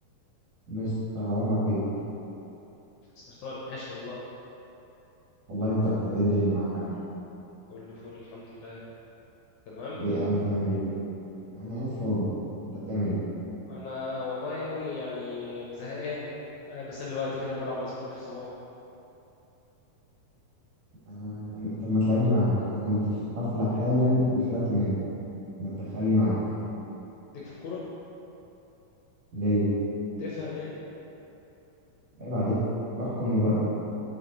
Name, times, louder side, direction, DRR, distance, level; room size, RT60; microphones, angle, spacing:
voice 1, 0.7-1.8 5.5-6.9 10.0-10.8 11.5-12.3 12.9-13.2 21.1-23.0 23.4-25.0 25.6-26.3 29.3-29.7 32.2-32.6 33.0-33.6, left 1 dB, 55° right, -9 dB, 2.4 m, -26 dB
voice 2, 3.3-4.2 7.7-8.8 9.7-10.0 13.7-16.3 16.7-18.5 27.3-27.8 30.2-30.8, left 3 dB, 75° left, -7 dB, 1.9 m, -36 dB
5.8 x 5.6 x 3.8 m, 2.9 s
omnidirectional pair, 4.1 m